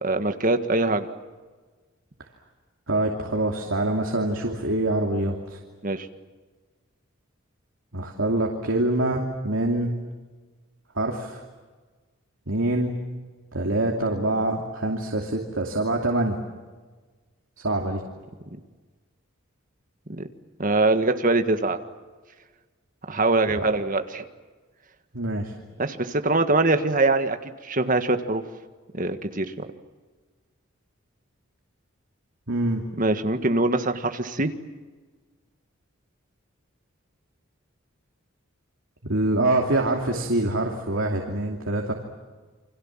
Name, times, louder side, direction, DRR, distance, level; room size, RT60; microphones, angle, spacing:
voice 1, 0.0-1.1 5.8-6.1 20.1-20.3 20.6-21.8 23.1-24.2 25.8-27.4 27.6-28.4 28.9-29.7 33.0-34.5, right 2 dB, 40° right, 8 dB, 1.7 m, -23 dB
voice 2, 2.9-5.6 7.9-9.9 10.9-11.4 12.5-12.9 13.5-16.4 17.6-18.0 23.6-23.7 25.1-25.5 32.5-32.8 39.0-41.9, right 2 dB, 75° right, 1 dB, 2.7 m, -25 dB
29.0 x 25.0 x 7.4 m, 1.4 s
head